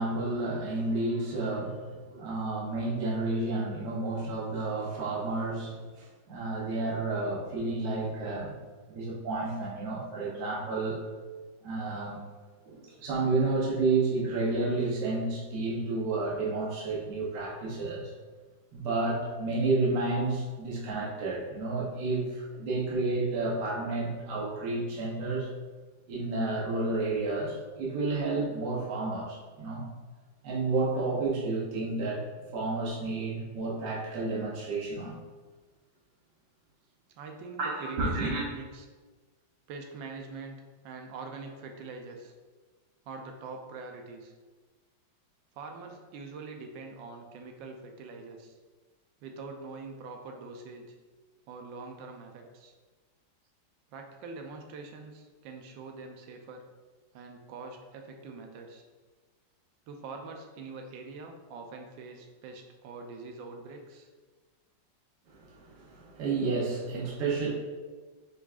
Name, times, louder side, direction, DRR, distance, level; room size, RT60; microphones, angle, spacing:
voice 1, 0.0-1.8 2.1-8.5 8.9-11.0 11.6-12.2 12.7-18.1 18.7-25.5 26.1-29.8 30.4-32.2 32.5-35.2 37.6-38.4 65.3-67.5, right 3 dB, 65° right, -5 dB, 1.4 m, -31 dB
voice 2, 37.2-38.8 39.7-40.6 40.8-42.3 43.0-44.3 45.5-48.6 49.2-50.8 51.5-52.7 53.9-56.6 57.1-58.8 59.9-64.1, right 4 dB, 85° right, 3 dB, 1.3 m, -44 dB
4.6 x 4.0 x 2.4 m, 1.4 s
omnidirectional pair, 2.0 m